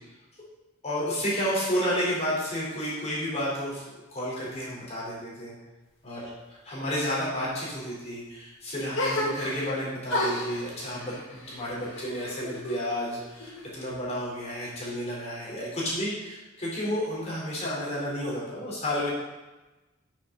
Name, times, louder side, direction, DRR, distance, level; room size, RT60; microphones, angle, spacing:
voice 1, 0.8-5.5 6.0-6.2 6.7-11.2 11.5-19.1, equal, 30° left, -6 dB, 3.7 m, -31 dB
sound 1, 8.9-9.7 10.1-12.8 13.1-14.0, left 1 dB, 65° left, 2.3 m, -32 dB
12.5 x 7.0 x 3.9 m, 1.1 s
head